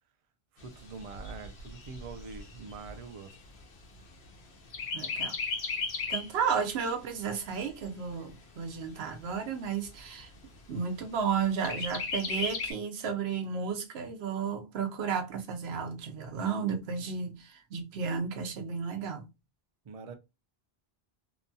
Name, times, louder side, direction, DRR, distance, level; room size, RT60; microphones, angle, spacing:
voice 1, 0.5-3.4 19.8-20.1, right 4 dB, 55° right, 0.4 m, -44 dB
Chirp tweet, 0.6-4.3 4.7-6.4 6.8-6.9 7.3-8.3 8.9-9.0 9.3-9.4 9.9-10.4 11.6-12.7, left 4 dB, 90° left, 0.9 m, -36 dB
voice 2, 4.9-5.3 6.1-10.3 10.7-19.3, right 6 dB, 85° right, 0.9 m, -33 dB
2.8 x 2.2 x 2.5 m
omnidirectional pair, 1.0 m